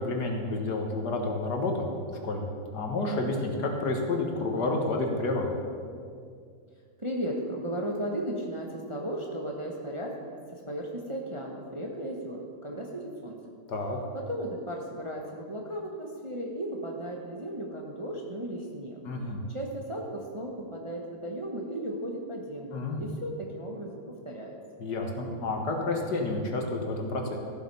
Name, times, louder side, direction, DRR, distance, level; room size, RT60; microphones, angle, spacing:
voice 1, 0.0-1.9 2.2-2.4 2.7-5.5 13.7-14.0 19.1-19.4 22.7-23.0 24.8-27.4, left 2 dB, 70° left, 2 dB, 2.0 m, -30 dB
voice 2, 7.0-10.2 10.5-13.4 14.1-19.0 19.5-24.0 24.2-24.6, right 1 dB, 20° right, 0 dB, 0.9 m, -35 dB
14.5 x 7.8 x 5.5 m, 2.2 s
omnidirectional pair, 1.9 m